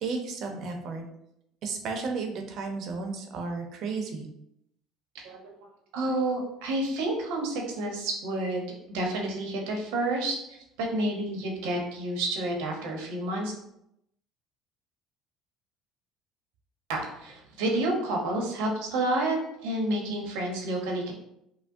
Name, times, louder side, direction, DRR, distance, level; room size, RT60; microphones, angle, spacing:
voice 1, 0.0-1.0 1.6-4.3, right 4 dB, 60° right, 4 dB, 0.7 m, -33 dB
voice 2, 5.1-5.5 5.9-13.5 16.9-19.4 19.6-21.1, right 1 dB, 90° right, 0 dB, 0.9 m, -30 dB
5.7 x 2.1 x 2.6 m, 0.80 s
cardioid pair, 110°, 0 cm